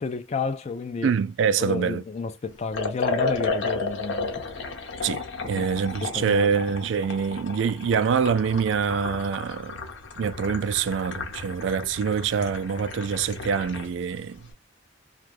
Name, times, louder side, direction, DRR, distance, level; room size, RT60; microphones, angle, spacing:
voice 1, 0.0-1.2 1.6-4.4 5.4-5.7 6.0-6.6, left 4 dB, 35° left, 0.3 m, -31 dB
voice 2, 1.0-2.0 5.0-5.2 5.5-9.8 10.2-14.4, right 6 dB, 75° right, 0.3 m, -25 dB
Liquid, 2.7-13.9, left 3 dB, 80° left, 0.8 m, -33 dB
2.6 x 2.3 x 3.1 m
head